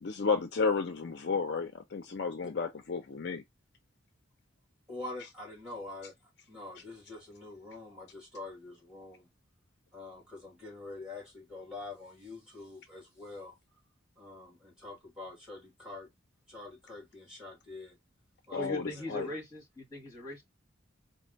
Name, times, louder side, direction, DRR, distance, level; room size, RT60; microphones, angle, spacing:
voice 1, 0.0-3.4 18.5-19.3, left 4 dB, 55° left, 0.5 m, -32 dB
voice 2, 4.9-6.1 6.5-9.3 9.9-13.6 14.2-16.1 16.5-18.0 18.5-19.4, left 2 dB, 5° right, 2.2 m, -45 dB
voice 3, 18.6-20.4, left 2 dB, 20° left, 1.9 m, -40 dB
4.1 x 2.0 x 3.9 m
head